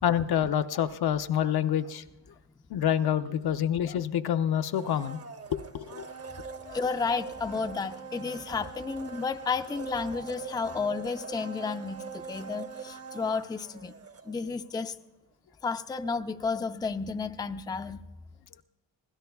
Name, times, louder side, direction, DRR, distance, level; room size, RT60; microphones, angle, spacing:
voice 1, 0.0-2.0 2.7-5.2 5.5-6.1 6.6-6.8, left 10 dB, 60° left, 8 dB, 0.7 m, -27 dB
Domestic sounds home sounds, 4.7-14.7 15.0-15.1, right 5 dB, 35° right, 0.8 m, -43 dB
voice 2, 6.7-13.9 14.2-15.0 15.6-18.0, left 4 dB, 10° left, 7 dB, 0.4 m, -32 dB
23.5 x 16.0 x 2.3 m, 1.0 s
cardioid pair, 95°, 43 cm